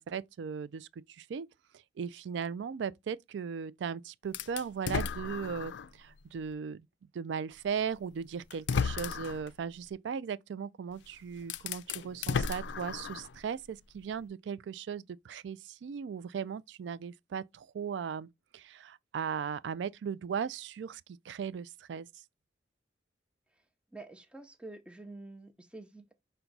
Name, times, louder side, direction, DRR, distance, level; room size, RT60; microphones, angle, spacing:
voice 1, 0.0-1.5 2.0-6.8 7.1-18.3 18.5-21.0 21.3-22.1, right 6 dB, 75° right, 0.3 m, -37 dB
sound 1, 4.3-6.0 6.5-6.6 7.8-7.9 8.5-9.5 10.9-11.0 11.4-13.4, left 6 dB, 75° left, 0.3 m, -34 dB
voice 2, 23.9-26.1, right 2 dB, 5° right, 0.6 m, -48 dB
5.8 x 2.2 x 3.9 m
head